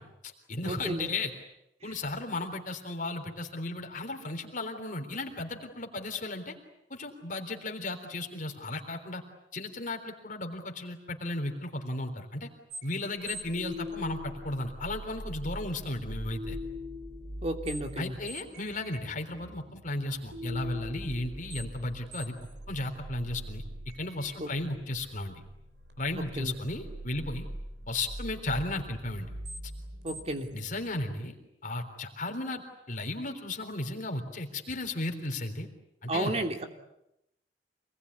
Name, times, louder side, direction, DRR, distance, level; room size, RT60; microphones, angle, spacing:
voice 1, 0.0-1.3 1.8-6.6 6.9-9.2 9.5-12.5 12.8-16.6 18.0-22.3 22.7-23.6 24.0-25.4 26.0-27.5 27.9-29.3 30.5-31.3 31.6-32.6 32.9-35.7 36.0-36.3, left 2 dB, 50° left, 4 dB, 3.6 m, -35 dB
voice 2, 0.6-1.1 17.4-18.1 24.4-24.5 26.4-26.5 30.0-30.5 36.1-36.7, right 1 dB, 35° right, 5 dB, 3.0 m, -32 dB
sound 1, 12.7-31.1, equal, 65° right, 4.1 m, -42 dB
27.0 x 20.0 x 9.7 m, 0.84 s
head